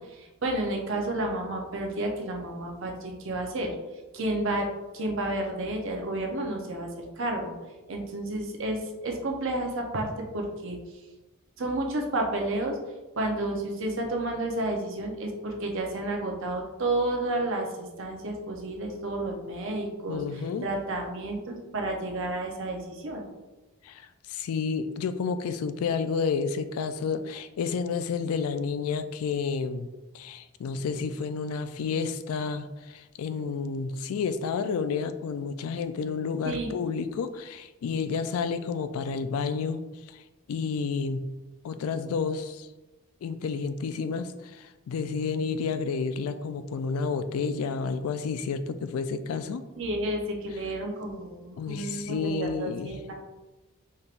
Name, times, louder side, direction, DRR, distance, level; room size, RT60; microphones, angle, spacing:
voice 1, 0.0-3.7 4.1-4.7 4.9-7.5 7.9-10.1 10.3-10.8 11.6-12.8 13.2-23.2 36.4-36.7 49.8-53.2, right 1 dB, 60° right, 1 dB, 0.7 m, -31 dB
voice 2, 20.1-20.7 23.8-29.9 30.1-40.2 40.5-41.3 41.6-42.7 43.2-49.6 51.6-53.0, left 5 dB, 75° left, 11 dB, 0.3 m, -30 dB
4.4 x 3.4 x 2.4 m, 1.1 s
head